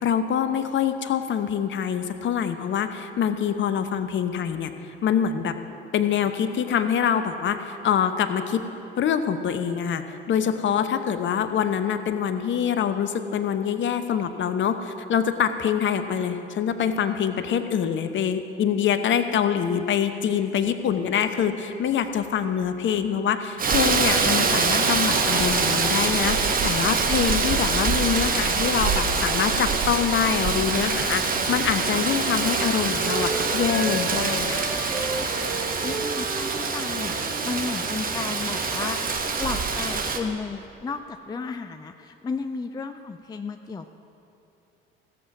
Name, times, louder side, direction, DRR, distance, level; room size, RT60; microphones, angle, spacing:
voice 1, 0.0-4.7 5.0-5.6 5.9-8.7 9.0-34.7, left 8 dB, 40° left, 9 dB, 0.9 m, -25 dB
Rain, 23.6-40.2, right 4 dB, 30° right, 1.2 m, -24 dB
Wind instrument woodwind instrument, 31.3-37.7, right 3 dB, 80° right, 2.0 m, -34 dB
voice 2, 35.4-43.9, left 4 dB, 15° left, 8 dB, 0.4 m, -33 dB
16.0 x 7.6 x 6.0 m, 2.9 s
figure-of-eight pair, 55°, 29 cm